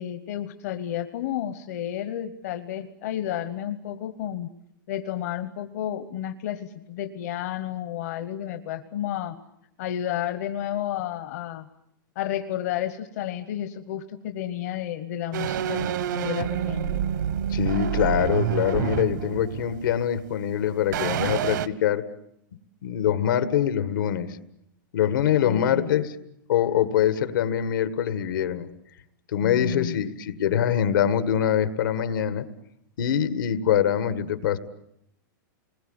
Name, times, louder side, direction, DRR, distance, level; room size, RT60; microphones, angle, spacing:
voice 1, 0.0-4.5 4.9-9.4 9.8-11.7 12.1-17.0 25.4-25.9 29.4-30.0, left 11 dB, 50° left, 9 dB, 1.0 m, -31 dB
sound 1, 15.3-20.5 20.9-21.7, right 9 dB, 65° right, 1.0 m, -28 dB
voice 2, 17.5-22.0 22.8-24.4 24.9-26.1 26.5-28.7 29.3-32.5 33.0-34.6, left 9 dB, 80° left, 12 dB, 1.8 m, -24 dB
28.5 x 20.5 x 9.6 m, 0.79 s
supercardioid pair, 175°, 11 cm